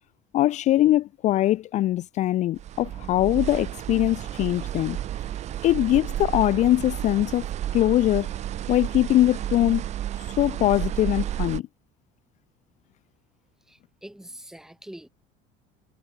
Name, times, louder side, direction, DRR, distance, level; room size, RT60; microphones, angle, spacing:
voice 1, 0.3-5.0 5.6-7.5 7.7-8.3 8.7-9.8 10.2-11.7, left 14 dB, 35° left, 0.6 m, -22 dB
sound 1, 2.6-11.6, right 12 dB, 35° right, 1.6 m, -32 dB
voice 2, 13.7-15.1, right 1 dB, ahead, 3.2 m, -44 dB
cardioid pair, 170°, 20 cm